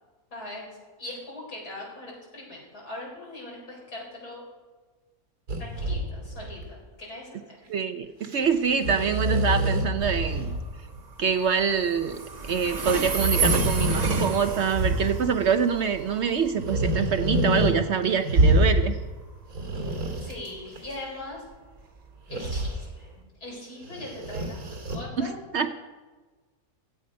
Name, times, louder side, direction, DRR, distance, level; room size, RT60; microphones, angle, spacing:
voice 1, 0.3-0.7 1.0-4.4 5.6-7.4 19.7-21.4 22.3-23.1 23.4-25.4, left 2 dB, 85° left, -3 dB, 5.2 m, -40 dB
sound 1, 5.5-6.7 8.2-8.4 8.7-10.7 10.9-11.0 12.9-15.4 16.5-17.7 18.0-19.0 19.4-20.8 22.3-22.7 23.8-25.0, right 1 dB, 80° right, 2.7 m, -26 dB
voice 2, 7.7-10.6 11.2-12.2 12.5-19.0 25.2-25.7, right 6 dB, 60° right, 9 dB, 0.8 m, -25 dB
Train, 8.4-23.2, right 5 dB, 35° right, 0.9 m, -34 dB
16.0 x 10.5 x 5.2 m, 1.4 s
omnidirectional pair, 1.6 m